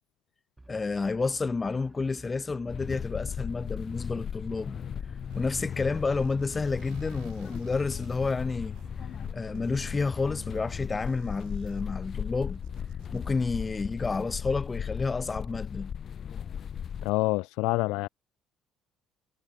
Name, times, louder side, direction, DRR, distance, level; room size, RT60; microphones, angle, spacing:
sound 1, 0.6-14.0, right 2 dB, 15° right, 4.4 m, -52 dB
voice 1, 0.7-4.8 5.3-8.8 9.3-12.6 13.1-15.9, left 4 dB, 30° left, 1.1 m, -30 dB
sound 2, 2.7-17.1, left 8 dB, 50° left, 2.6 m, -37 dB
sound 3, 5.3-13.3, right 22 dB, 80° right, 4.2 m, -58 dB
voice 2, 17.0-18.1, left 23 dB, 80° left, 0.4 m, -26 dB
supercardioid pair, 65°, 0 cm